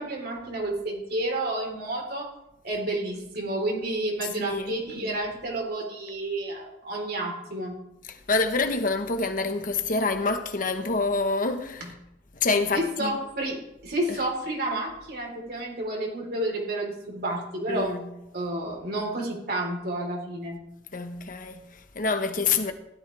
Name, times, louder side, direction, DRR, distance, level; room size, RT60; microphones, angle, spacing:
voice 1, 0.0-2.3 2.6-7.8 11.8-11.9 12.7-13.6 13.8-17.9 18.3-20.6, right 1 dB, 60° right, 4.0 m, -30 dB
voice 2, 4.4-4.8 8.0-11.9 12.3-13.2 17.7-18.1 20.9-22.7, left 3 dB, 50° left, 1.2 m, -27 dB
15.5 x 12.5 x 3.5 m
head